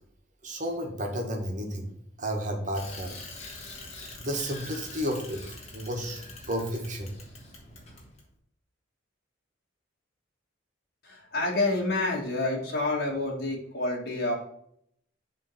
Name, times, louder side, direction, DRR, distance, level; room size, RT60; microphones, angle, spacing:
voice 1, 0.4-1.9 2.2-3.2 4.2-5.4 5.7-7.1, equal, 40° right, 2 dB, 1.6 m, -32 dB
Bicycle, 2.7-8.2, left 2 dB, 35° left, 2.0 m, -44 dB
voice 2, 11.1-14.3, left 2 dB, 50° left, -3 dB, 2.0 m, -28 dB
7.3 x 3.8 x 5.8 m, 0.69 s
head